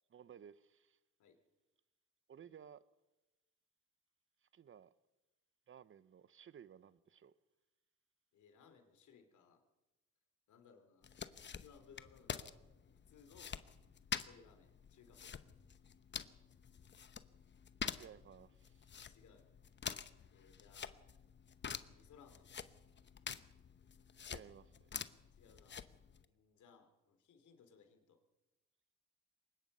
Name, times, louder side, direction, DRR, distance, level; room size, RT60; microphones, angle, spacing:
voice 1, 0.1-1.0 2.3-2.8 4.4-4.9 5.7-7.3 18.0-19.1 24.3-24.9, right 8 dB, 40° right, 0.8 m, -58 dB
voice 2, 8.3-9.6 10.5-12.6 12.9-13.5 14.2-15.4 18.9-19.4 20.3-21.0 21.8-22.5 25.3-25.8 26.2-28.2, left 6 dB, 75° left, 3.2 m, -64 dB
sound 1, 11.0-26.2, left 7 dB, 35° left, 0.9 m, -48 dB
23.5 x 20.0 x 5.5 m
cardioid pair, 90°, 30 cm